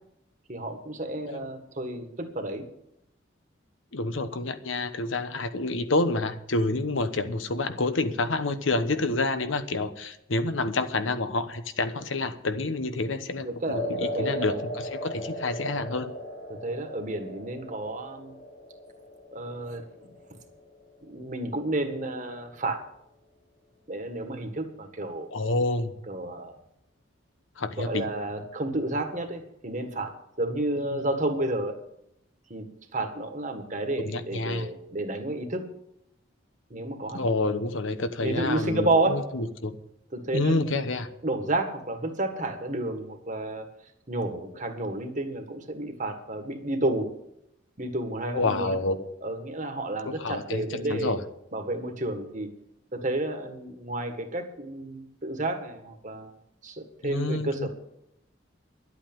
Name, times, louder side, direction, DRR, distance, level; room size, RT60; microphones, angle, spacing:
voice 1, 0.5-2.7 13.4-14.6 16.5-18.3 19.3-20.1 21.0-22.8 23.9-25.3 26.1-26.6 27.8-31.8 32.5-35.6 36.7-37.2 38.2-39.2 40.1-40.7 41.2-43.7 44.1-47.1 47.8-48.8 49.2-51.1 51.5-52.5 52.9-56.3 56.6-57.7, right 2 dB, 40° right, 6 dB, 1.7 m, -31 dB
voice 2, 3.9-16.1 25.3-25.9 27.6-28.1 30.8-31.1 34.0-34.7 37.1-39.8 40.3-41.1 48.3-49.1 50.1-51.2 57.0-57.7, left 2 dB, 80° left, 10 dB, 1.1 m, -28 dB
sound 1, 13.7-22.0, equal, 50° left, 2.7 m, -38 dB
11.5 x 8.4 x 9.0 m, 0.80 s
head